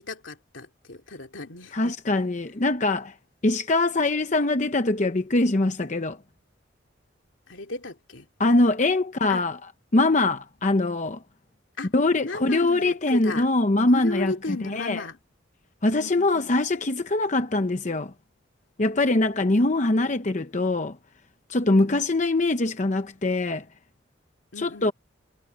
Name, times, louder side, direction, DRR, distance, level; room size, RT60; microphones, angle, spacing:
voice 1, 0.0-2.0 7.5-8.3 9.3-9.4 11.8-11.9 12.2-13.5 13.9-15.2 15.8-16.5 21.8-22.0 24.5-24.9, left 2 dB, 75° left, 2.6 m, -35 dB
voice 2, 1.7-3.1 3.4-6.2 8.4-9.6 9.9-11.2 11.9-14.3 14.6-15.0 15.8-18.1 18.8-21.0 21.5-23.6 24.6-24.9, left 2 dB, 40° left, 0.8 m, -23 dB
head